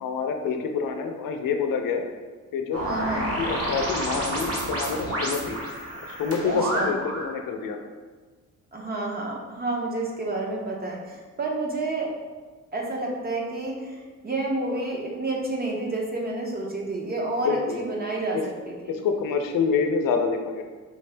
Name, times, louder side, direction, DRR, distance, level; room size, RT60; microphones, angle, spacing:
voice 1, 0.0-2.0 2.5-2.8 3.2-5.6 6.2-7.8 17.4-17.8 18.3-18.4 18.9-20.6, left 5 dB, 85° left, 4 dB, 0.6 m, -27 dB
sound 1, 2.7-7.3, right 1 dB, 45° right, 1.0 m, -29 dB
voice 2, 2.8-3.3 6.4-7.0 8.7-12.1 12.7-18.4 18.7-18.9, right 2 dB, 30° right, -2 dB, 0.7 m, -29 dB
4.8 x 2.7 x 3.3 m, 1.4 s
wide cardioid pair, 150°, 32 cm